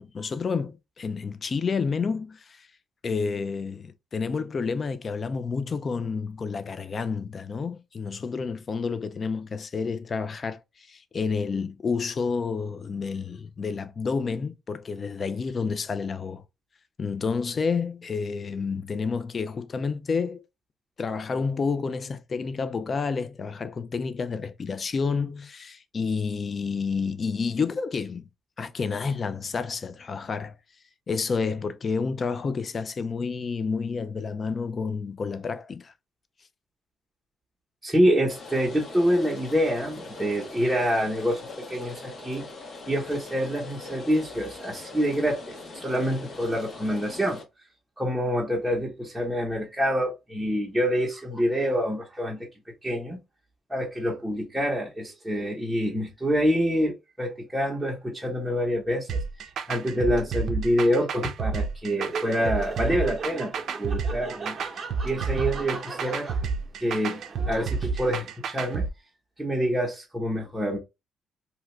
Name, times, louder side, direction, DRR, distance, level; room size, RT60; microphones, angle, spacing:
voice 1, 0.0-2.7 3.0-16.4 17.0-20.4 21.0-28.3 28.6-30.6 31.1-35.9, left 5 dB, 40° left, 0.4 m, -29 dB
voice 2, 37.8-42.4 42.9-47.4 48.0-52.5 52.8-53.2 53.7-59.2 59.7-63.5 63.8-64.6 65.0-66.3 66.8-68.9 69.4-70.8, equal, 5° right, 0.9 m, -26 dB
Rain, 38.3-47.4, left 3 dB, 60° left, 1.2 m, -42 dB
sound 1, 59.1-68.9, right 5 dB, 70° right, 0.4 m, -30 dB
Laughter, 61.9-68.5, right 4 dB, 35° right, 0.8 m, -39 dB
2.8 x 2.3 x 3.1 m
cardioid pair, 90°, 0 cm